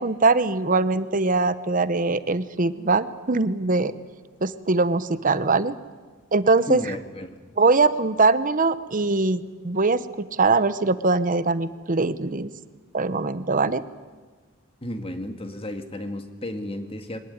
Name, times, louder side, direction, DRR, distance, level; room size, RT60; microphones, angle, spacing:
voice 1, 0.0-3.9 4.4-5.8 6.3-6.8 7.6-12.5 12.9-13.8, right 3 dB, 40° right, 14 dB, 0.9 m, -22 dB
voice 2, 6.7-7.4 14.8-17.2, left 1 dB, 30° left, 7 dB, 2.0 m, -33 dB
23.0 x 19.0 x 9.6 m, 1.4 s
head